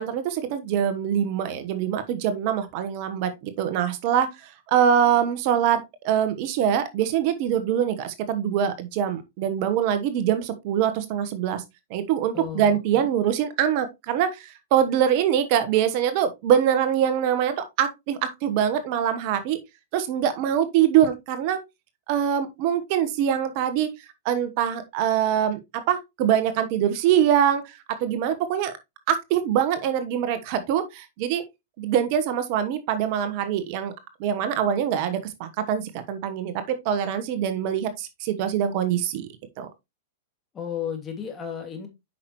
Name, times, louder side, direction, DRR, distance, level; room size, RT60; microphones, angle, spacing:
voice 1, 0.0-11.6 11.9-19.6 19.9-21.6 22.1-23.9 24.2-28.7 29.1-31.4 31.8-33.9 34.2-39.3 39.6-39.7, right 9 dB, 50° right, 1.2 m, -24 dB
voice 2, 12.3-13.1 40.5-41.9, left 8 dB, 25° left, 2.9 m, -33 dB
8.4 x 5.9 x 3.1 m
hypercardioid pair, 115°, 0 cm